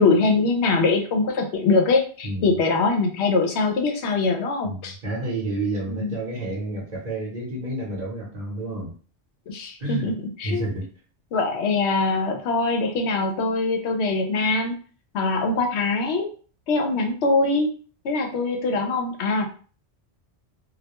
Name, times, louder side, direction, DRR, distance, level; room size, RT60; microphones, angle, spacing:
voice 1, 0.0-4.9 5.9-6.1 9.5-10.1 10.4-10.7 11.3-14.7 15.1-16.3 16.7-17.7 18.0-19.5, left 3 dB, 70° left, 3 dB, 0.8 m, -22 dB
voice 2, 2.2-2.6 4.6-8.9 9.8-10.1 10.4-10.9, right 2 dB, 40° right, -6 dB, 0.8 m, -30 dB
2.3 x 2.2 x 2.8 m, 0.40 s
omnidirectional pair, 1.2 m